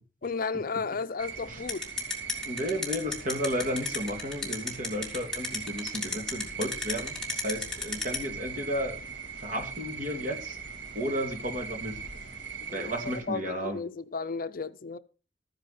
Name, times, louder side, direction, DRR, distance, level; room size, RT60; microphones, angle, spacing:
voice 1, 0.2-1.9 12.7-12.9 13.3-15.0, left 4 dB, 50° left, 0.6 m, -33 dB
sound 1, 1.2-13.2, right 6 dB, 80° right, 2.0 m, -40 dB
sound 2, 1.7-8.2, left 4 dB, 5° left, 3.4 m, -31 dB
voice 2, 2.4-9.0 9.4-10.6 10.9-12.0 12.7-13.8, equal, 45° right, 2.5 m, -33 dB
14.0 x 10.0 x 4.3 m
head